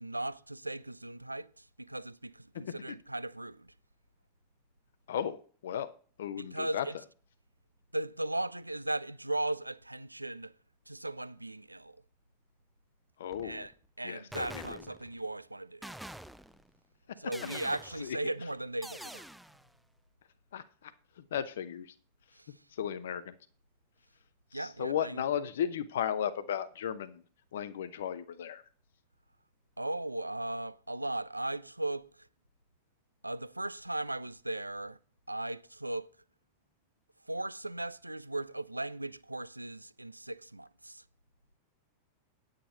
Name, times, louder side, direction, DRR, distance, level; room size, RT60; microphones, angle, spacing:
voice 1, 0.0-3.7 6.4-6.9 7.9-10.5 10.9-12.0 13.4-13.7 14.0-15.9 17.2-19.3 22.4-22.5 24.5-25.2 29.8-32.1 33.2-35.0 35.3-36.1 37.3-41.0, right 1 dB, 85° right, 0.4 m, -37 dB
voice 2, 2.5-3.0 5.1-5.9 6.2-6.9 13.2-13.7 14.0-14.8 17.1-17.2 18.0-18.2 20.5-20.9 21.2-21.9 22.7-23.4 24.5-27.2 27.5-28.6, left 9 dB, 60° left, 0.8 m, -35 dB
sound 1, 13.3-13.7 14.3-15.3 15.8-16.7 17.3-18.2 18.8-19.7, right 1 dB, ahead, 0.4 m, -46 dB
10.0 x 9.1 x 4.1 m
figure-of-eight pair, 90°, 0 cm